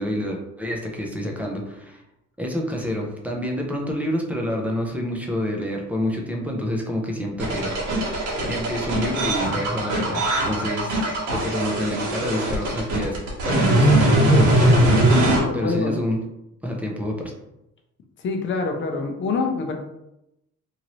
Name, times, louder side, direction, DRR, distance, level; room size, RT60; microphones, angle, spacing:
voice 1, 0.0-2.0 2.4-7.7 8.5-14.7 15.1-16.2 16.6-17.3, equal, 5° right, -1 dB, 0.4 m, -28 dB
sound 1, 7.4-15.4, right 1 dB, 85° right, 1.3 m, -20 dB
voice 2, 15.3-16.0 18.2-19.8, left 4 dB, 40° left, 3 dB, 0.6 m, -26 dB
2.9 x 2.6 x 3.0 m, 0.88 s
cardioid pair, 140°, 30 cm